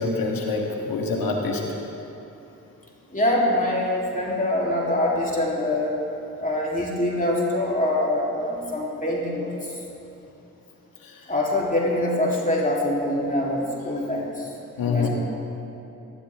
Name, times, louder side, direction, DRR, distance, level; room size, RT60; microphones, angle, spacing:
voice 1, 0.0-1.6 11.0-11.3 14.8-15.1, left 4 dB, 85° left, 0 dB, 1.8 m, -26 dB
voice 2, 3.1-6.0 6.4-9.8 11.3-14.5 14.8-15.1, left 1 dB, 25° left, -4 dB, 3.5 m, -24 dB
17.5 x 12.5 x 3.7 m, 2.9 s
supercardioid pair, 45°, 34 cm